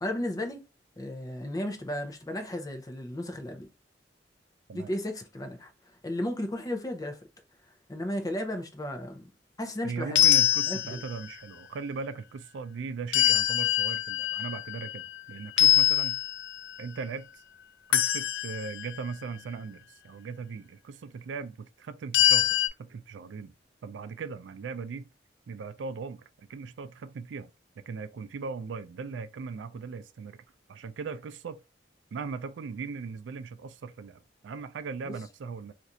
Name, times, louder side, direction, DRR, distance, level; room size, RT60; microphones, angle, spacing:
voice 1, 0.0-0.6 1.0-3.7 4.7-5.7 6.0-7.2 7.9-9.3 9.6-10.2 10.7-11.0 35.1-35.2, left 1 dB, 20° left, 0.6 m, -34 dB
voice 2, 9.8-16.2 16.8-17.3 17.9-23.5 23.8-25.1 25.5-26.2 26.5-27.5 27.8-30.4 30.7-31.6 32.1-35.7, right 5 dB, 80° right, 0.4 m, -38 dB
sound 1, 10.2-11.3 13.1-15.2 15.6-16.8 17.9-19.0 22.1-22.7, left 12 dB, 70° left, 0.3 m, -24 dB
2.6 x 2.4 x 4.1 m
head